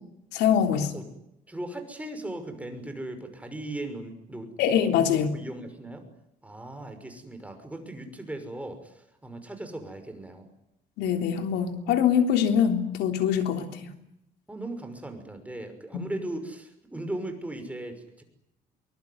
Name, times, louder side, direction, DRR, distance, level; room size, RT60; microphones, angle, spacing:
voice 1, 0.3-0.9 4.6-5.3 11.0-13.8 15.9-16.0, left 8 dB, 85° left, 7 dB, 3.5 m, -23 dB
voice 2, 1.5-4.5 5.1-6.1 6.4-10.5 14.5-18.2, right 1 dB, 10° right, 7 dB, 6.0 m, -38 dB
23.5 x 21.5 x 9.7 m, 0.84 s
cardioid pair, 110°, 17 cm